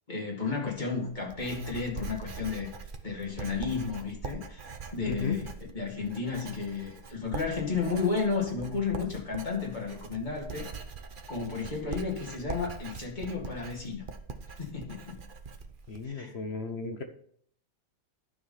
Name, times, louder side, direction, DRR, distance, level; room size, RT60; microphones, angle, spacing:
voice 1, 0.1-2.7 3.0-5.4 5.7-10.7 11.3-14.0 14.6-15.2 16.0-16.3, left 4 dB, 35° left, 2.3 m, -32 dB
Writing, 0.7-16.0, right 5 dB, 45° right, 0.9 m, -42 dB
voice 2, 5.1-5.4 15.9-17.0, left 4 dB, 55° left, 1.0 m, -35 dB
12.0 x 4.8 x 5.6 m
omnidirectional pair, 1.4 m